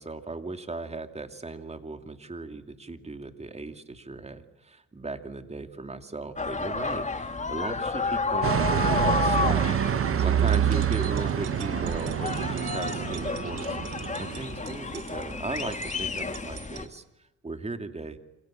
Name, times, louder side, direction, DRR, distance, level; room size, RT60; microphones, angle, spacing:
voice 1, 0.0-9.7 10.2-17.0 17.4-18.2, right 3 dB, 20° right, 7 dB, 2.7 m, -37 dB
sound 1, 6.4-16.9, left 4 dB, 25° left, 2.2 m, -31 dB
sound 2, 8.4-15.0, right 9 dB, 45° right, 1.1 m, -27 dB
sound 3, 10.3-16.9, right 11 dB, 90° right, 3.1 m, -46 dB
28.0 x 27.0 x 7.5 m, 0.95 s
cardioid pair, 90°, 30 cm